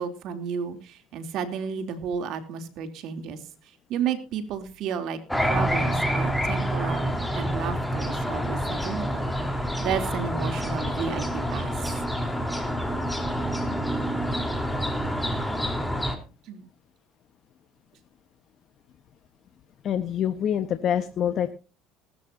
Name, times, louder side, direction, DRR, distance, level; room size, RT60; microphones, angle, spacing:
voice 1, 0.0-3.4 3.9-9.3 9.8-11.9 16.5-16.7, right 7 dB, 65° right, 9 dB, 3.1 m, -32 dB
sound 1, 5.3-16.2, equal, 5° left, 3.8 m, -27 dB
voice 2, 19.8-21.5, left 9 dB, 50° left, 9 dB, 1.4 m, -26 dB
19.5 x 13.0 x 2.8 m, 0.32 s
supercardioid pair, 85°, 0 cm